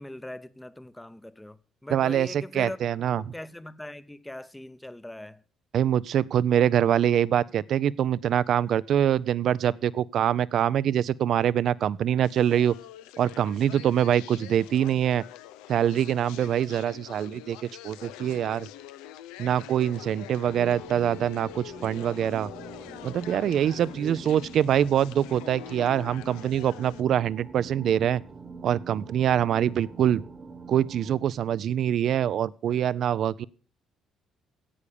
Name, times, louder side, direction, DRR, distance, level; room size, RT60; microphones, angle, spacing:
voice 1, 0.0-2.8 3.1-5.4 23.7-24.4, left 1 dB, 10° left, 0.8 m, -41 dB
voice 2, 1.9-3.2 5.7-12.7 13.2-15.2 15.7-17.6 17.8-18.7 19.4-22.5 23.0-28.2 28.6-30.2 30.7-33.5, right 10 dB, 65° right, 0.4 m, -24 dB
sound 1, 12.2-27.0, left 12 dB, 85° left, 0.5 m, -45 dB
sound 2, 20.4-31.2, right 3 dB, 40° right, 1.2 m, -45 dB
10.0 x 8.4 x 6.8 m
supercardioid pair, 60°, 0 cm